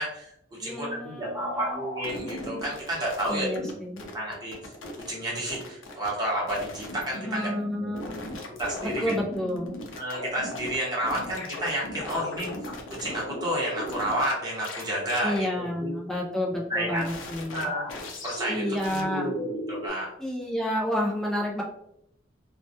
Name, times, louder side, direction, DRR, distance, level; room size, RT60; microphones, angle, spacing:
voice 1, 0.0-4.6 5.0-9.2 10.0-12.5 13.0-15.9 16.7-17.1 17.5-17.9 18.2-20.1, right 1 dB, 20° right, -5 dB, 0.8 m, -31 dB
voice 2, 0.6-1.8 3.3-4.0 7.2-8.3 8.8-9.8 15.2-17.7 18.5-19.3 20.2-21.6, left 1 dB, ahead, -2 dB, 0.3 m, -30 dB
sound 1, 1.4-3.7 4.0-5.1 5.4-6.1 6.5-10.8 11.0-14.3 14.6-14.8 15.1-15.4 17.0-19.9, left 1 dB, 80° left, 0.5 m, -37 dB
2.2 x 2.1 x 2.7 m, 0.75 s
head